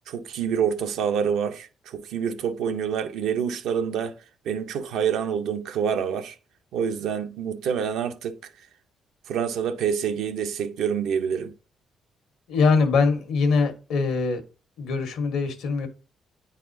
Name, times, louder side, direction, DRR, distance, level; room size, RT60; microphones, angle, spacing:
voice 1, 0.1-4.1 4.4-6.4 6.7-8.4 9.3-11.5, right 7 dB, 80° right, 0.7 m, -27 dB
voice 2, 12.5-14.4 14.8-15.9, left 4 dB, 85° left, 1.3 m, -22 dB
9.3 x 4.1 x 2.6 m
cardioid pair, 90°, 0 cm